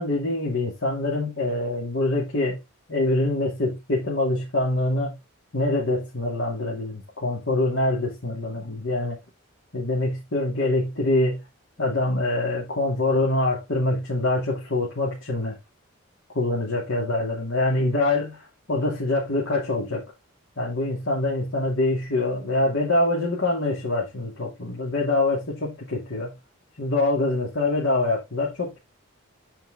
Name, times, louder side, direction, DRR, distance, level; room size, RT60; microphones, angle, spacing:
voice 1, 0.0-2.6 2.9-5.2 5.5-9.2 9.7-11.4 11.8-15.6 16.3-20.0 20.6-26.3 26.8-28.8, left 2 dB, 65° left, 2.6 m, -25 dB
9.1 x 4.8 x 3.6 m
head